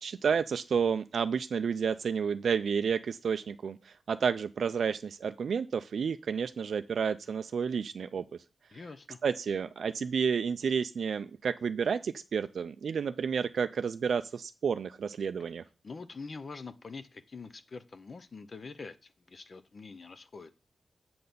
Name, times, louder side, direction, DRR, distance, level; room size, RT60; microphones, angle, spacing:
voice 1, 0.0-8.2 9.2-15.6, right 6 dB, 70° right, 10 dB, 0.3 m, -31 dB
voice 2, 8.7-9.2 15.8-20.5, left 4 dB, 45° left, 12 dB, 0.5 m, -45 dB
7.6 x 4.1 x 6.8 m, 0.31 s
wide cardioid pair, 135°, 0 cm